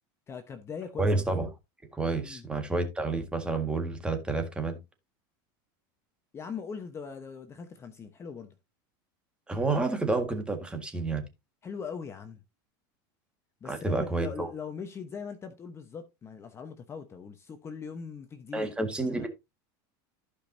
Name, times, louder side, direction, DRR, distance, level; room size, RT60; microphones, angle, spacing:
voice 1, 0.3-1.2 2.2-2.4 6.3-8.5 11.6-12.4 13.6-18.7 19.2-19.3, left 6 dB, 20° left, 1.0 m, -40 dB
voice 2, 1.0-1.5 1.9-4.8 9.5-11.3 13.6-14.5 18.5-19.3, right 3 dB, 10° right, 1.7 m, -29 dB
15.0 x 5.2 x 2.7 m
supercardioid pair, 140°, 12 cm